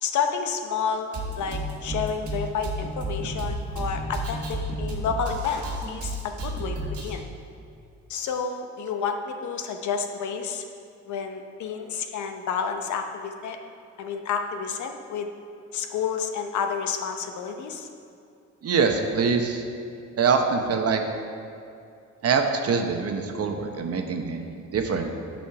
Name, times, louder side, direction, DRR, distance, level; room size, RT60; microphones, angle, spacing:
voice 1, 0.0-6.8 7.0-7.2 8.1-10.6 11.1-13.6 14.0-15.3 15.7-17.9, left 6 dB, 75° left, 6 dB, 0.8 m, -30 dB
Drum kit, 1.1-7.1, right 1 dB, 80° right, 1.4 m, -32 dB
voice 2, 18.6-19.6 20.2-21.0 22.2-25.1, right 5 dB, 50° right, 4 dB, 0.9 m, -24 dB
8.3 x 4.4 x 5.7 m, 2.5 s
cardioid pair, 90°, 30 cm